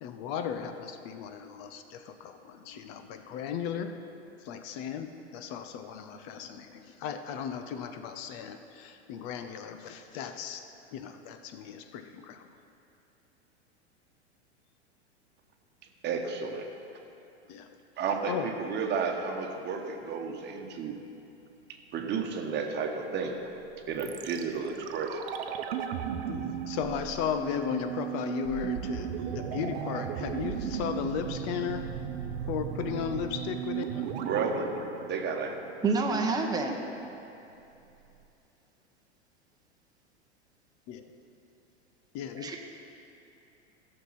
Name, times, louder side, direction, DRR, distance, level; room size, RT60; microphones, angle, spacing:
voice 1, 0.0-3.9 4.5-10.6 10.9-12.4 17.5-17.7 18.3-18.5 26.3-31.9 32.5-34.1 40.9-41.0 42.1-42.5, left 8 dB, 45° left, 7 dB, 0.8 m, -36 dB
voice 2, 16.0-16.7 18.0-21.0 21.9-23.4 23.9-25.2 34.1-34.7 35.1-35.6, right 5 dB, 30° right, 2 dB, 1.4 m, -32 dB
sound 1, 24.0-36.0 36.2-36.3, right 9 dB, 60° right, 0.9 m, -36 dB
voice 3, 35.8-36.7 42.4-42.6, right 4 dB, 10° right, 1 dB, 1.1 m, -27 dB
16.0 x 6.6 x 4.2 m, 2.8 s
hypercardioid pair, 95°, 34 cm